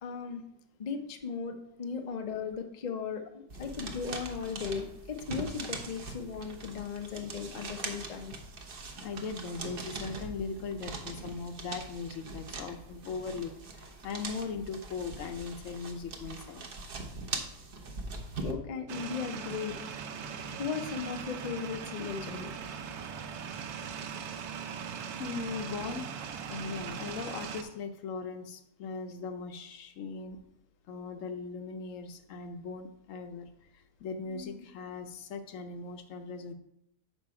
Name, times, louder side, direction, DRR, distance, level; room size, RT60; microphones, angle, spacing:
voice 1, 0.0-0.4 0.8-8.4 18.4-19.8 20.6-22.5, left 6 dB, 80° left, 5 dB, 0.3 m, -37 dB
sound 1, 3.5-18.5, right 3 dB, 45° right, 0.8 m, -42 dB
voice 2, 9.0-16.7 25.1-26.1 26.5-30.4 30.9-36.5, left 4 dB, 65° left, 8 dB, 0.9 m, -39 dB
sound 2, 18.9-27.6, right 7 dB, 70° right, 1.1 m, -40 dB
6.6 x 5.4 x 4.7 m, 0.79 s
omnidirectional pair, 1.8 m